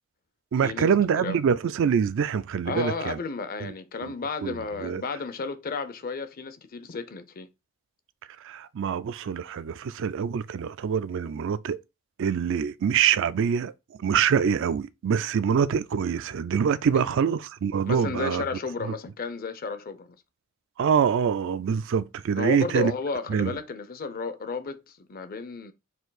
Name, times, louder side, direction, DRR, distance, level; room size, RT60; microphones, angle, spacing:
voice 1, 0.5-3.2 3.6-3.7 4.0-4.1 4.4-5.0 8.4-11.8 12.2-13.7 14.0-18.4 18.9-19.0 20.8-22.9 23.3-23.5, right 7 dB, 60° right, 0.4 m, -25 dB
voice 2, 2.7-7.5 16.9-17.2 17.9-20.2 22.4-25.7, left 4 dB, 45° left, 0.6 m, -33 dB
4.4 x 2.7 x 3.9 m
head